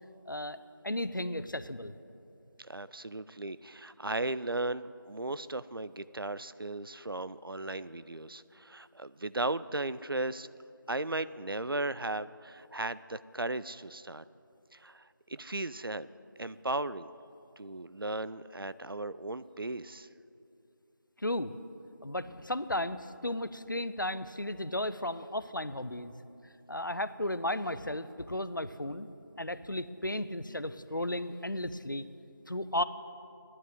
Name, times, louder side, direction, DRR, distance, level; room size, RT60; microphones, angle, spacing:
voice 1, 0.3-0.6 0.8-1.9 21.2-21.6 22.0-26.1 26.7-29.1 29.4-32.0 32.5-32.8, left 1 dB, 65° left, 13 dB, 0.6 m, -34 dB
voice 2, 2.6-10.5 10.9-14.2 14.7-16.1 16.4-17.1 17.6-20.1, right 2 dB, 85° right, 16 dB, 0.5 m, -36 dB
11.0 x 9.6 x 7.7 m, 2.7 s
figure-of-eight pair, 180°, 12 cm